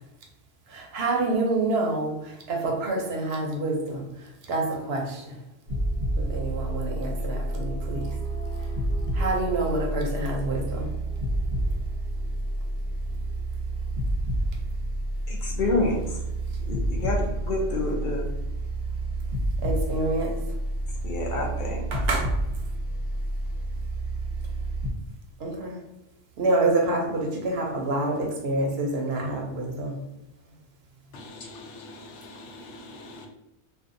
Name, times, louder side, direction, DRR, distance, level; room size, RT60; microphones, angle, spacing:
voice 1, 0.7-5.4 6.2-8.1 9.1-10.9 19.6-20.4 21.9-22.3 25.4-25.8 26.4-30.0, right 2 dB, 70° right, 1 dB, 0.8 m, -27 dB
sound 1, 5.7-24.9, right 1 dB, 35° right, 0.7 m, -29 dB
voice 2, 15.3-16.2 16.7-18.3 21.0-22.1, left 2 dB, 60° left, 0 dB, 0.6 m, -28 dB
voice 3, 31.1-33.3, left 2 dB, 90° left, 2 dB, 0.9 m, -43 dB
2.6 x 2.2 x 2.5 m, 0.91 s
omnidirectional pair, 1.2 m